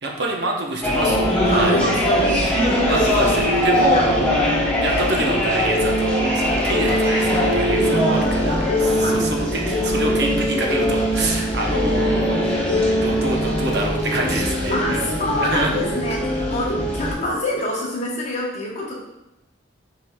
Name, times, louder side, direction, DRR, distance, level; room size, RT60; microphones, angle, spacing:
voice 1, 0.0-1.8 2.9-4.4 4.8-12.5 13.0-15.7, right 2 dB, 60° right, 0 dB, 0.7 m, -26 dB
sound 1, 0.8-17.1, left 1 dB, 5° left, 0.9 m, -23 dB
sound 2, 1.0-17.3, equal, 60° left, 1.0 m, -24 dB
voice 2, 1.5-3.1 3.9-4.3 9.0-9.2 14.7-18.9, left 1 dB, 35° left, -3 dB, 1.0 m, -26 dB
5.9 x 3.8 x 2.2 m, 0.92 s
head